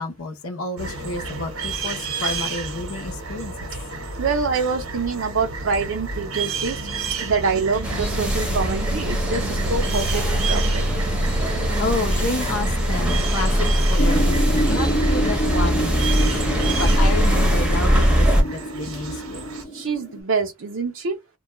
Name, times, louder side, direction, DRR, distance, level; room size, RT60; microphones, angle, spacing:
voice 1, 0.0-3.7 11.8-16.3 16.8-19.4, left 3 dB, 90° left, 0.7 m, -30 dB
sound 1, 0.8-19.6, right 4 dB, 85° right, 0.9 m, -31 dB
voice 2, 4.2-6.8 7.2-10.8 19.7-21.2, right 4 dB, 65° right, 0.5 m, -25 dB
sound 2, 7.8-18.4, equal, 5° right, 0.7 m, -21 dB
sound 3, 14.0-20.2, equal, 55° left, 0.7 m, -28 dB
2.3 x 2.2 x 2.9 m
head